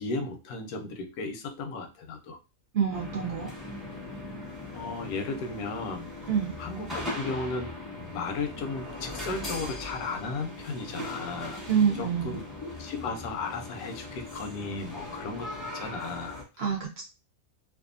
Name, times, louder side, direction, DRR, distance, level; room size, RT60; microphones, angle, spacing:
voice 1, 0.0-2.4 4.7-6.1 6.6-7.7 8.1-11.6 12.0-16.4, left 3 dB, 85° left, 6 dB, 1.1 m, -35 dB
voice 2, 2.7-3.5 6.3-6.5 11.7-12.4 16.6-17.0, right 7 dB, 60° right, 0 dB, 0.7 m, -27 dB
sound 1, 2.9-16.4, left 2 dB, ahead, 0.6 m, -39 dB
2.7 x 2.3 x 2.5 m, 0.29 s
omnidirectional pair, 1.5 m